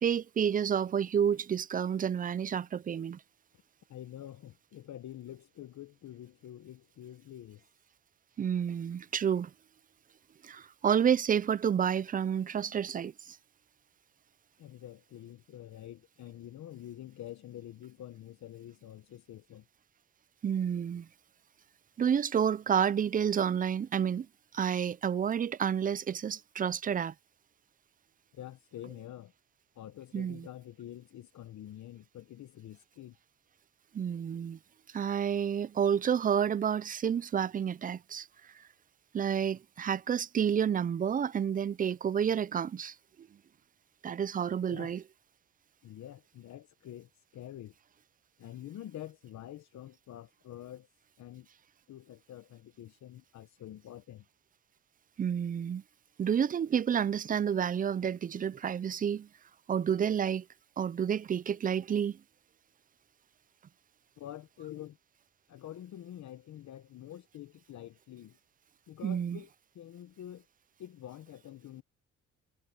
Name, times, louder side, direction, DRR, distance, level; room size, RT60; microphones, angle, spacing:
voice 1, 0.0-3.2 8.4-9.5 10.4-13.4 20.4-21.1 22.0-24.3 24.5-27.1 30.1-30.5 33.9-34.6 34.9-38.3 39.1-43.3 44.0-45.0 55.2-55.8 56.2-59.3 59.7-60.4 60.8-62.2 69.0-69.4, right 8 dB, 30° right, 0.4 m, -30 dB
voice 2, 3.9-7.6 14.6-19.7 28.3-29.3 29.7-33.2 44.7-45.0 45.8-47.7 48.4-50.9 51.2-51.5 51.9-54.2 64.2-65.0 65.5-68.4 68.9-69.5 69.7-70.4 70.8-71.8, left 12 dB, 65° left, 1.1 m, -47 dB
cardioid pair, 90°, 30 cm